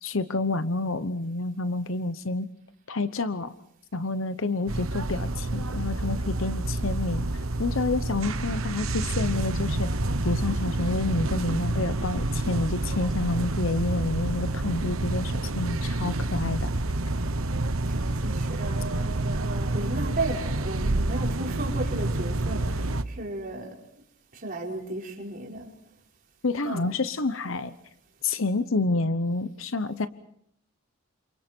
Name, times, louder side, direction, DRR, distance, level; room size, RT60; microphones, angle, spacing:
voice 1, 0.0-2.5 2.9-3.5 3.9-7.3 7.6-9.9 10.2-16.7 26.4-27.7 28.2-30.1, left 3 dB, 65° left, 12 dB, 0.9 m, -28 dB
sound 1, 4.7-23.0, right 2 dB, 80° right, 1.2 m, -28 dB
voice 2, 17.9-23.8 24.3-25.7 26.6-27.0, right 2 dB, 45° right, -1 dB, 5.2 m, -35 dB
29.0 x 27.0 x 4.5 m, 0.71 s
head